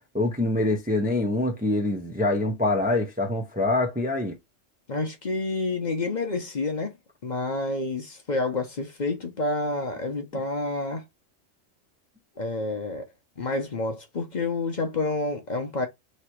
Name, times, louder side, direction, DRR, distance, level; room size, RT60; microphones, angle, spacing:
voice 1, 0.1-4.4, left 2 dB, 10° right, 0.5 m, -25 dB
voice 2, 4.9-6.9 7.2-11.0 12.4-13.0 13.4-15.9, left 2 dB, 45° left, 0.8 m, -29 dB
3.2 x 2.9 x 4.4 m
omnidirectional pair, 1.2 m